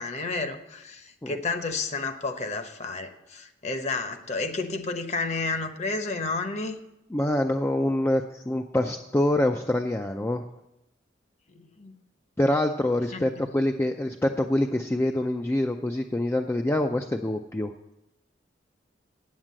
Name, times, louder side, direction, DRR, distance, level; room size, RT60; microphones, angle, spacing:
voice 1, 0.0-6.8 11.5-11.9 13.1-13.5, left 3 dB, 40° left, 7 dB, 0.9 m, -31 dB
voice 2, 7.1-10.4 12.4-17.7, left 1 dB, 15° left, 4 dB, 0.4 m, -25 dB
8.8 x 7.4 x 7.5 m, 0.89 s
head